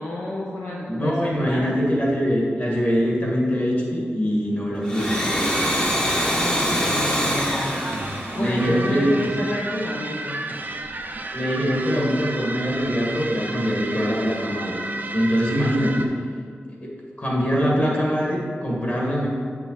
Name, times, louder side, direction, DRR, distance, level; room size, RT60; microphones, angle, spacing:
voice 1, 0.0-1.9 6.3-10.6, left 1 dB, 65° left, -4 dB, 0.9 m, -31 dB
voice 2, 0.9-5.5 8.3-9.1 11.3-14.8 15.1-16.1 17.2-19.3, equal, 35° left, -3 dB, 1.8 m, -23 dB
Domestic sounds home sounds, 4.8-9.3, equal, 20° left, 1.0 m, -24 dB
sound 1, 5.0-16.1, right 2 dB, 45° right, 0.6 m, -33 dB
8.1 x 5.8 x 4.1 m, 2.2 s
wide cardioid pair, 110°, 4 cm